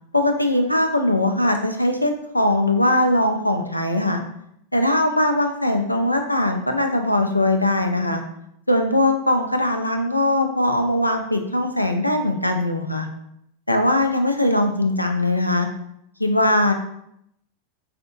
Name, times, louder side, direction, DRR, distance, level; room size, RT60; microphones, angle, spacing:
voice 1, 0.1-4.2 4.7-8.2 8.7-13.1 13.7-15.7 16.2-16.7, left 1 dB, 85° left, 5 dB, 0.4 m, -20 dB
4.2 x 2.6 x 2.5 m, 0.74 s
figure-of-eight pair, 90°, 0 cm